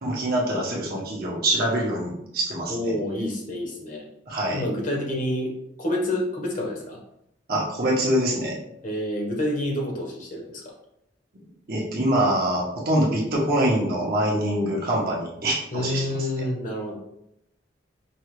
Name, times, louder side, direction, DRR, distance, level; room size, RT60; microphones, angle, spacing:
voice 1, 0.0-2.9 4.3-4.6 7.5-8.6 11.7-16.0, right 1 dB, 55° right, -4 dB, 1.2 m, -24 dB
voice 2, 2.7-4.1 4.5-7.0 8.8-10.7 15.7-16.9, left 1 dB, 45° left, 0 dB, 1.1 m, -28 dB
5.4 x 2.4 x 3.2 m, 0.76 s
head